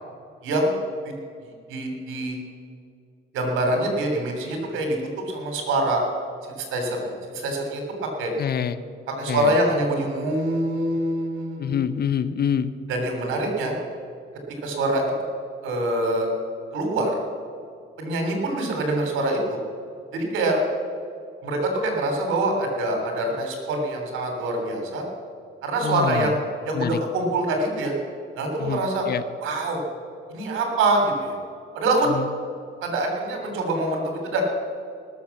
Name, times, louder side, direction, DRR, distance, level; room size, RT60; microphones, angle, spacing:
voice 1, 0.4-0.8 1.7-2.3 3.3-5.0 5.3-6.0 6.5-7.8 8.2-8.3 9.2-11.8 12.9-13.7 14.6-15.0 15.6-16.3 16.7-17.2 18.0-19.6 20.1-20.6 21.4-25.0 25.6-26.4 26.6-27.9 28.3-29.1 29.4-29.8 30.3-31.4 31.7-32.1 32.8-34.4, right 2 dB, 90° right, 3 dB, 3.1 m, -25 dB
voice 2, 8.4-8.8 9.3-9.5 11.6-12.7 25.8-26.3 26.7-27.0 28.6-29.2 32.1-32.2, left 8 dB, 55° left, 13 dB, 0.8 m, -26 dB
19.0 x 7.2 x 7.2 m, 2.3 s
cardioid pair, 90°, 20 cm